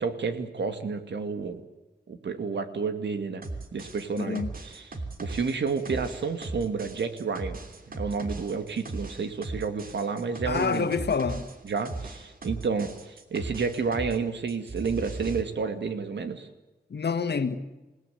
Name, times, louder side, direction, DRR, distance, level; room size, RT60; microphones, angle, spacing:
voice 1, 0.0-1.6 2.1-3.4 3.7-4.9 5.2-7.6 7.9-10.9 11.6-16.5, right 5 dB, 85° right, 2.4 m, -30 dB
sound 1, 3.4-14.2 14.5-15.4, right 2 dB, 55° right, 3.1 m, -38 dB
voice 2, 4.2-4.5 10.5-11.5 16.9-17.6, left 5 dB, 70° left, 1.8 m, -27 dB
28.0 x 18.5 x 9.5 m
wide cardioid pair, 105°, 18 cm